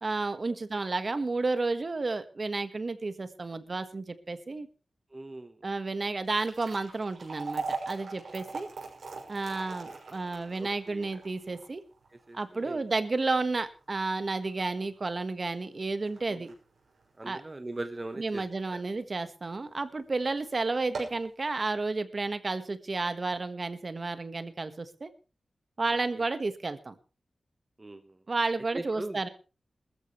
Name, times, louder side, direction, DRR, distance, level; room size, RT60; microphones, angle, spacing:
voice 1, 0.0-4.7 5.6-8.7 9.3-11.8 12.3-16.5 17.2-17.4 18.2-25.1 25.8-26.9 28.3-29.3, right 3 dB, 45° right, 11 dB, 1.4 m, -31 dB
voice 2, 5.1-5.6 8.3-8.7 9.9-10.0 10.6-11.2 12.1-12.9 16.3-16.5 17.2-18.4 18.7-18.8 25.9-26.3 27.8-28.2 28.7-29.2, right 2 dB, 25° right, 8 dB, 1.1 m, -41 dB
sound 1, 6.2-18.5 18.9-19.0 19.7-19.9 20.2-20.3 20.7-21.3, right 4 dB, 85° right, 6.0 m, -41 dB
20.5 x 14.0 x 3.2 m, 0.34 s
wide cardioid pair, 105°, 0 cm